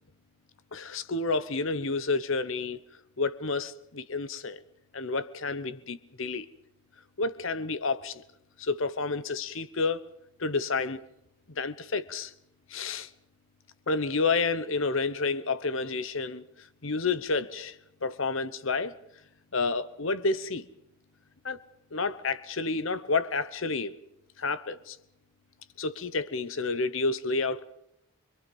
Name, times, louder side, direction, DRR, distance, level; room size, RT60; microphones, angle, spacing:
voice 1, 0.7-2.8 3.2-4.6 4.9-6.5 7.2-8.2 8.6-10.0 10.4-11.0 11.6-12.3 12.7-13.1 13.9-17.8 18.0-19.0 19.5-20.6 21.4-21.6 21.9-24.0 24.4-25.0 25.8-27.6, left 3 dB, 65° left, 1.1 m, -30 dB
25.5 x 23.0 x 5.5 m
head